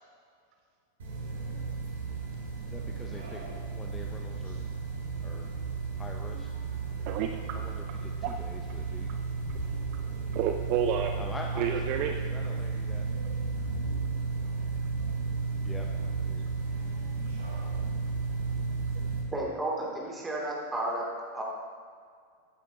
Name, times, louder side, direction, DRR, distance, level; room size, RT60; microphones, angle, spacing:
sound 1, 1.0-19.2, right 4 dB, 65° right, 2.3 m, -33 dB
voice 1, 2.7-4.6 5.2-5.5 5.9-6.5 7.1-9.1 11.2-13.1 15.6-15.9 16.2-16.5, left 2 dB, 10° left, 1 dB, 0.7 m, -45 dB
voice 2, 7.0-7.4 8.2-8.4 9.7-11.2 11.6-12.1, right 9 dB, 45° right, 6 dB, 0.5 m, -30 dB
voice 3, 19.3-21.1 21.3-21.4, right 1 dB, 15° right, -3 dB, 2.6 m, -32 dB
14.5 x 8.8 x 2.8 m, 2.1 s
figure-of-eight pair, 90°, 0 cm